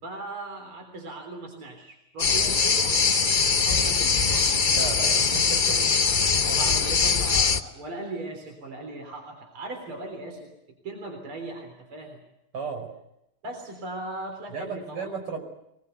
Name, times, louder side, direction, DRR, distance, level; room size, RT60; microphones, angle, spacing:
voice 1, 0.0-3.0 3.5-4.7 5.9-6.1 6.3-10.5 10.8-12.2 13.4-15.1, right 2 dB, 70° right, 3 dB, 4.5 m, -38 dB
sound 1, 2.2-7.6, left 5 dB, 50° left, 0.5 m, -22 dB
voice 2, 4.7-5.8 12.5-12.9 14.5-15.4, right 5 dB, 85° right, 3 dB, 5.7 m, -34 dB
24.0 x 20.5 x 8.1 m, 0.83 s
omnidirectional pair, 2.4 m